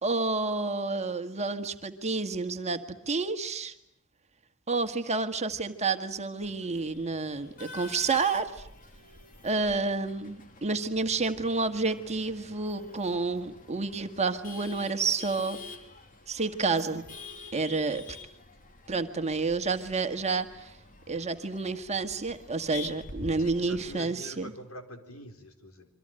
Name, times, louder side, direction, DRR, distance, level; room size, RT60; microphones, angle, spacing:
voice 1, 0.0-3.7 4.7-8.5 9.4-15.6 16.3-17.1 17.5-18.2 18.9-20.7 21.1-24.5, right 3 dB, 30° right, 7 dB, 1.8 m, -29 dB
Male speech man speaking / Laughter / Chatter, 6.4-24.0, left 3 dB, 40° left, 2.5 m, -48 dB
voice 2, 23.4-25.9, equal, 70° left, 6 dB, 4.2 m, -45 dB
27.5 x 24.0 x 9.0 m, 0.74 s
head